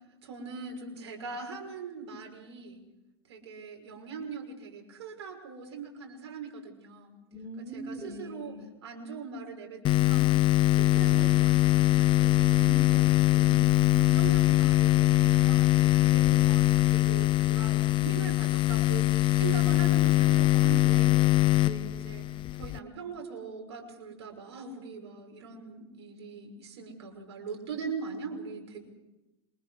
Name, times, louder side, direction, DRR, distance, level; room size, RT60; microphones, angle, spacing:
voice 1, 0.2-2.8 3.3-7.2 7.6-8.6 8.8-10.4 10.7-13.1 14.0-21.2 22.0-22.3 22.5-28.8, right 5 dB, 75° right, 3 dB, 5.8 m, -41 dB
voice 2, 7.3-8.7 13.3-14.3 20.9-22.0, right 1 dB, 25° right, 4 dB, 4.9 m, -42 dB
sound 1, 9.8-22.8, left 17 dB, 35° left, 0.7 m, -23 dB
27.0 x 24.5 x 4.9 m, 0.99 s
hypercardioid pair, 100°, 14 cm